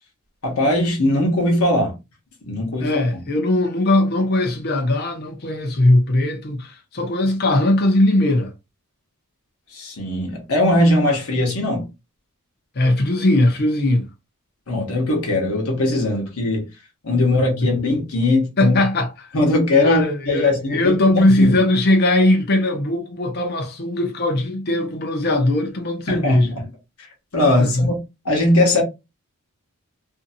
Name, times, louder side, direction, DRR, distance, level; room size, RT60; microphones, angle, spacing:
voice 1, 0.4-1.9 2.4-3.2 9.7-11.9 14.7-16.7 17.0-18.8 19.3-21.6 26.1-26.6 27.3-28.0 28.2-28.8, left 2 dB, 75° left, 1.0 m, -20 dB
voice 2, 2.8-8.5 12.8-14.0 18.6-19.3 19.8-26.5 27.6-27.9, left 1 dB, 45° left, 0.6 m, -19 dB
2.6 x 2.6 x 2.6 m
head